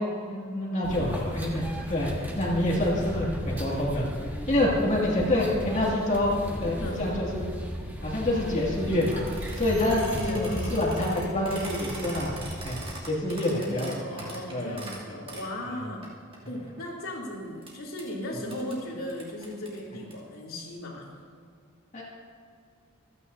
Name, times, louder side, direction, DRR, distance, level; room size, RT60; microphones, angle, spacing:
voice 1, 0.0-4.1 4.5-6.3 6.6-7.4 8.0-9.3 9.6-10.0 10.3-12.8 13.0-14.8 21.9-22.0, left 1 dB, 35° left, -4 dB, 2.2 m, -27 dB
sound 1, 0.8-12.8, equal, 10° right, 1.5 m, -35 dB
sound 2, 9.0-15.5 16.0-16.1 16.3-17.2 17.6-17.7 18.0-18.1 18.5-18.7 19.1-20.1, right 2 dB, 25° right, 2.6 m, -42 dB
voice 2, 9.9-11.1 13.3-16.1 16.5-21.1, left 1 dB, 85° left, -3 dB, 3.0 m, -37 dB
27.0 x 9.6 x 2.7 m, 2.3 s
head